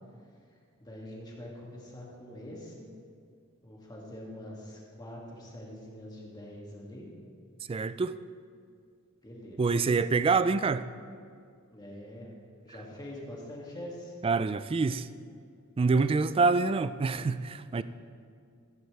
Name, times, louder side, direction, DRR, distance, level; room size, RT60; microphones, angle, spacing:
voice 1, 0.8-2.9 3.6-7.1 9.2-9.9 11.7-12.3 12.6-14.1 17.7-17.8, left 1 dB, 20° left, 2.3 m, -44 dB
voice 2, 7.7-8.2 9.6-10.9 14.2-15.1 15.8-17.8, right 4 dB, 25° right, 0.3 m, -26 dB
15.0 x 10.5 x 3.4 m
head